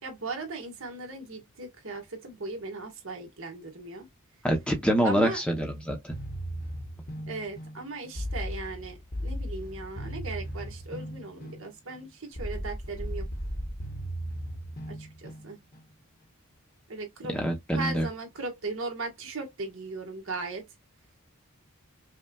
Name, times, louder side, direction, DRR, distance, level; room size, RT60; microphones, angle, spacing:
voice 1, 0.0-4.1 5.0-5.4 7.3-13.3 14.9-15.6 16.9-17.4 17.7-20.6, right 3 dB, 65° right, 1.5 m, -37 dB
voice 2, 4.4-6.1 17.3-18.1, equal, 5° left, 0.8 m, -26 dB
sound 1, 6.1-15.9, equal, 40° left, 1.1 m, -37 dB
5.4 x 2.3 x 2.3 m
head